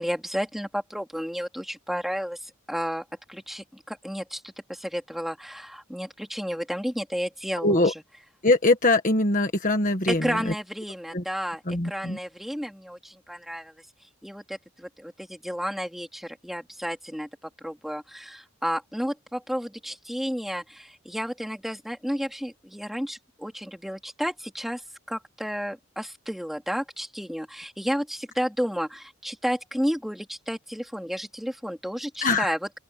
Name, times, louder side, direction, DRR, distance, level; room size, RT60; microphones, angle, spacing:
voice 1, 0.0-7.9 10.1-13.7 14.2-17.3 17.6-32.6, equal, ahead, 3.5 m, -32 dB
voice 2, 7.6-7.9 8.4-10.5 11.1-11.2 11.7-12.2 32.2-32.5, left 2 dB, 35° left, 1.6 m, -22 dB
open air
head